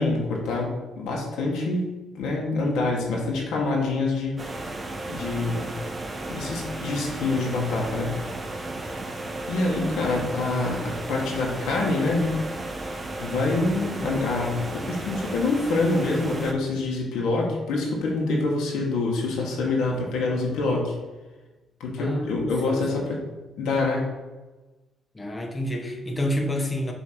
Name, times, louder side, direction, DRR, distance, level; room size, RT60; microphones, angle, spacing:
voice 1, 0.0-4.4 5.1-5.8 6.3-8.2 9.0-9.2 9.5-12.4 13.2-20.9 21.8-23.2 23.6-24.1, left 3 dB, 85° left, -1 dB, 1.7 m, -26 dB
sound 1, 4.4-16.5, right 2 dB, 25° right, 0.9 m, -34 dB
voice 2, 22.0-22.9 23.1-23.3 25.1-26.9, left 1 dB, 20° left, 1 dB, 1.0 m, -29 dB
7.0 x 3.2 x 6.1 m, 1.2 s
cardioid pair, 90°, 0 cm